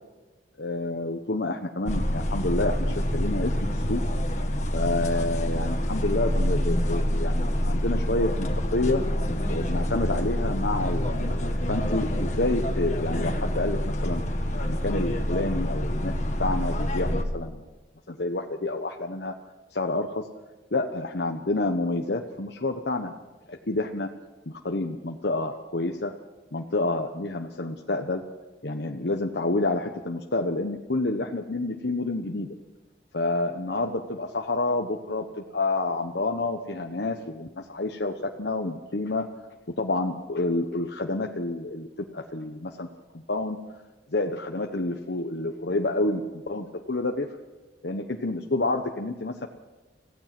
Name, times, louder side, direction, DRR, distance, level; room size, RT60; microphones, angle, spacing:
voice 1, 0.6-4.0 4.7-9.0 9.5-14.2 14.6-16.1 16.4-17.6 18.1-19.3 19.7-20.3 20.7-23.1 23.5-24.1 24.5-26.1 26.5-28.2 28.6-32.5 33.1-39.3 39.8-41.9 42.1-42.9 43.1-43.6 44.1-47.3 47.8-49.5, left 2 dB, 70° left, 3 dB, 1.1 m, -29 dB
sound 1, 1.9-17.2, equal, 40° left, 1.9 m, -27 dB
26.5 x 16.0 x 6.1 m, 1.2 s
head